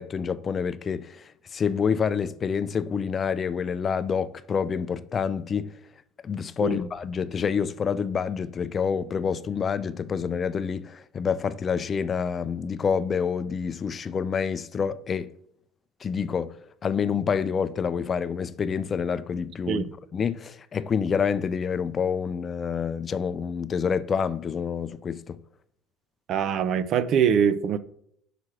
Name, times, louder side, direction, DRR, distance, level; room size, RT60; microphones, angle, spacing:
voice 1, 0.0-5.8 6.2-15.3 16.0-25.4, left 6 dB, 35° left, 0.4 m, -28 dB
voice 2, 26.3-27.8, right 7 dB, 55° right, 0.5 m, -23 dB
6.2 x 5.0 x 5.9 m
supercardioid pair, 95°, 0 cm